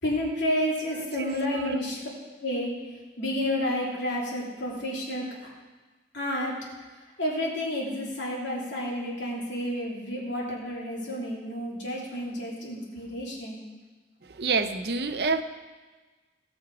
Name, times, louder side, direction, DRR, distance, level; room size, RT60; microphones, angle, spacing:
voice 1, 0.0-2.0 2.4-5.5 6.1-6.6 7.2-13.6, left 1 dB, 80° left, 3.1 m, -30 dB
voice 2, 0.9-1.8 14.2-15.4, right 4 dB, 60° right, 0.6 m, -29 dB
17.5 x 6.3 x 4.9 m
head